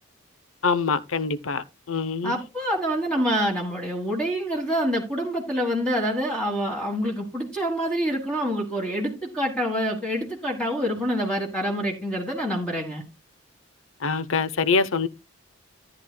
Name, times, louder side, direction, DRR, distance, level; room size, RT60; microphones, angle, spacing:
voice 1, 0.6-2.4 14.0-15.1, left 4 dB, 75° left, 0.7 m, -24 dB
voice 2, 2.2-13.0, equal, 5° left, 1.6 m, -26 dB
13.5 x 9.3 x 2.2 m
head